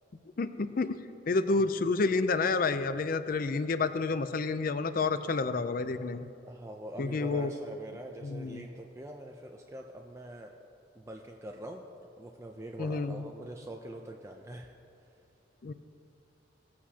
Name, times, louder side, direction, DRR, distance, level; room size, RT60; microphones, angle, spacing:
voice 1, 0.4-6.3 7.0-7.5 8.2-8.6 12.8-13.3 15.6-15.7, left 3 dB, 50° left, 12 dB, 0.4 m, -29 dB
voice 2, 6.4-10.5 11.0-11.8 12.2-14.7, right 1 dB, 15° right, 1 dB, 0.5 m, -44 dB
18.5 x 8.6 x 2.8 m, 2.6 s
head